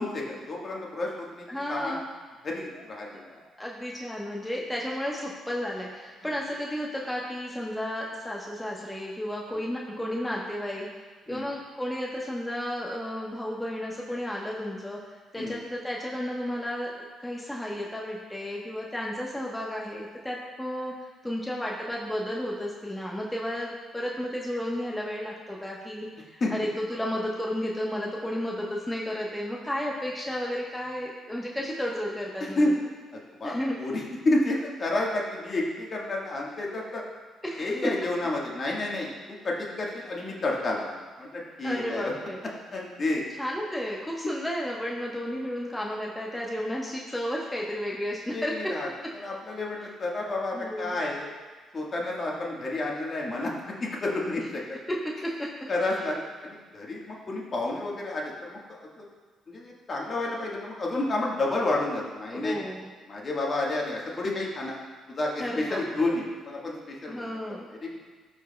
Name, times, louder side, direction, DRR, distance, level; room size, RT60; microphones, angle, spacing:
voice 1, 0.0-2.0 2.4-3.4 9.5-9.7 11.3-11.5 15.3-15.6 26.4-26.5 32.4-32.7 33.1-37.0 37.6-42.1 42.7-43.2 48.3-48.9 49.1-51.4 51.7-54.6 55.7-56.1 56.4-59.0 59.5-62.6 63.1-64.8 65.1-67.4 67.7-68.0, left 2 dB, 45° left, -2 dB, 1.5 m, -30 dB
voice 2, 1.5-2.0 3.1-3.2 3.6-10.9 11.3-15.0 15.3-20.9 21.2-32.6 33.4-33.8 37.4-37.7 41.6-42.4 43.4-48.8 50.5-51.0 54.9-55.0 55.2-55.5 56.0-56.2 62.3-62.9 65.4-66.1 67.1-67.7, equal, 10° left, -3 dB, 1.0 m, -33 dB
13.5 x 4.6 x 2.2 m, 1.5 s
supercardioid pair, 65°, 0 cm